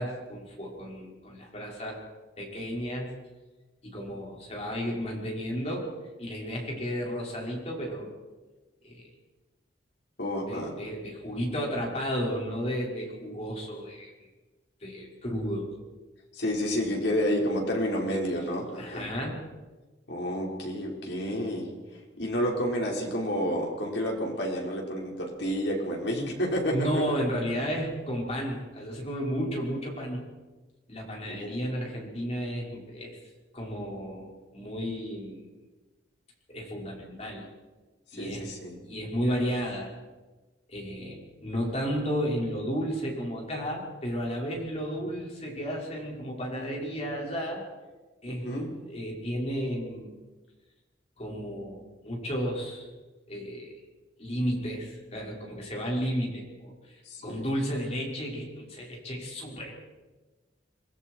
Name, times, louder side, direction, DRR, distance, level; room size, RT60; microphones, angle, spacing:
voice 1, 0.0-2.0 2.4-3.1 3.8-5.9 6.2-8.1 8.8-9.1 10.5-14.1 14.8-15.7 18.8-19.4 26.7-30.3 30.9-33.2 33.5-35.5 36.5-37.4 38.1-38.5 38.9-39.9 40.7-47.6 48.2-48.6 48.9-50.1 51.2-52.9 53.3-53.7 54.2-59.7, equal, 35° left, -2 dB, 5.9 m, -33 dB
voice 2, 10.2-10.7 16.3-19.1 20.1-21.7 22.2-27.2 31.3-31.5 38.1-38.8 48.3-48.7 57.1-57.4, equal, 65° left, -1 dB, 5.4 m, -30 dB
27.5 x 20.5 x 4.8 m, 1.2 s
head